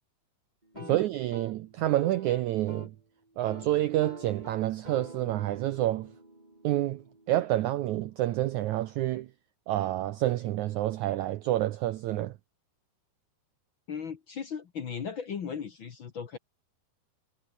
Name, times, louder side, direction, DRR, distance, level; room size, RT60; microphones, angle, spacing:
sound 1, 0.6-3.0 3.3-3.7 4.0-7.9, right 1 dB, 10° right, 4.0 m, -48 dB
voice 1, 0.9-2.9 3.4-6.1 6.6-9.3 9.7-12.4, right 14 dB, 90° right, 1.6 m, -28 dB
voice 2, 13.9-16.4, left 7 dB, 55° left, 1.3 m, -37 dB
omnidirectional pair, 4.5 m